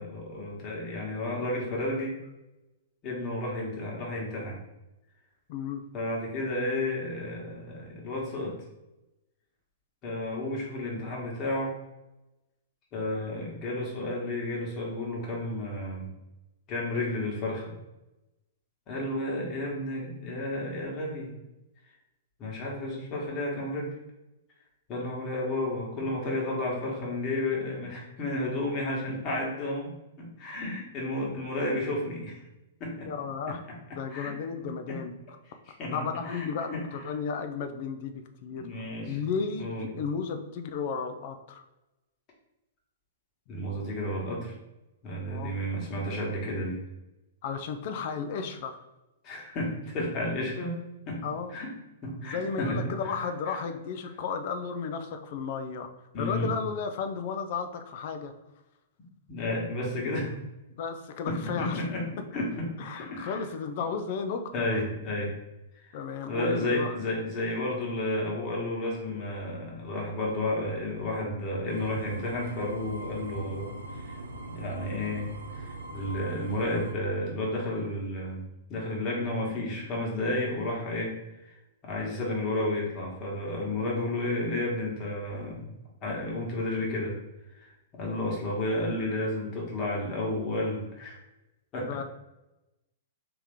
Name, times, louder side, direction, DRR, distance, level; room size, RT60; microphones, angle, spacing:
voice 1, 0.0-2.2 3.0-4.6 5.9-8.6 10.0-11.7 12.9-16.1 16.7-17.7 18.9-21.3 22.4-23.9 24.9-32.4 32.8-33.1 34.1-34.3 34.6-35.0 35.8-36.8 38.5-39.2 39.6-39.9 43.5-44.5 45.0-46.8 49.2-50.8 51.1-51.2 51.5-51.7 52.0-53.6 56.1-56.5 59.3-60.4 61.3-62.1 62.3-63.4 64.5-65.3 66.3-73.7 74.0-74.2 74.5-75.3 75.5-78.4 78.7-81.5 81.8-85.7 86.0-87.2 87.6-91.2 91.7-92.0, left 1 dB, 35° left, -3 dB, 1.4 m, -32 dB
voice 2, 5.5-5.9 33.0-33.6 33.9-35.1 35.9-38.7 39.1-41.6 45.3-45.5 47.4-48.8 51.2-51.6 52.2-55.9 56.2-58.3 60.8-61.9 62.8-64.7 65.9-67.0 91.8-92.0, left 6 dB, 50° left, 7 dB, 0.5 m, -33 dB
sound 1, 71.7-76.9, right 2 dB, 80° right, 0.7 m, -40 dB
3.4 x 2.9 x 3.5 m, 0.98 s
hypercardioid pair, 110°, 0 cm